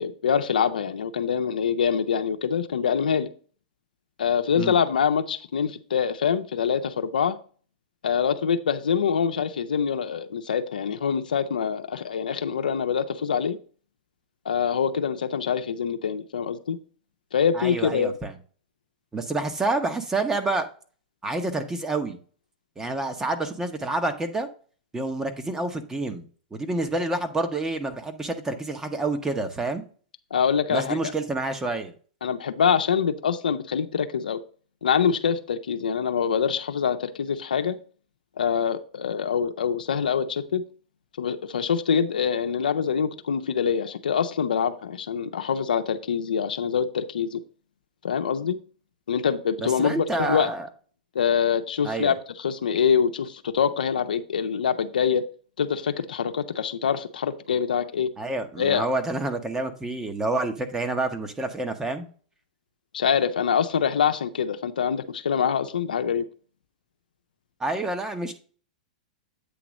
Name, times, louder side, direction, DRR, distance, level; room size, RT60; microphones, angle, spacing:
voice 1, 0.0-3.3 4.2-7.4 8.0-13.6 14.4-16.8 17.3-18.1 30.3-31.0 32.2-34.4 34.8-37.8 38.4-40.6 41.2-47.4 48.0-48.6 49.1-50.5 51.1-55.2 55.6-58.1 58.6-58.9 62.9-66.2, left 7 dB, 90° left, 0.7 m, -25 dB
voice 2, 17.5-18.3 19.1-20.7 21.2-22.2 22.8-24.5 24.9-26.2 26.5-29.8 30.7-31.9 49.6-50.7 51.8-52.1 58.2-62.1 67.6-68.3, right 2 dB, 10° right, 0.9 m, -28 dB
8.5 x 3.0 x 6.1 m
hypercardioid pair, 130°, 4 cm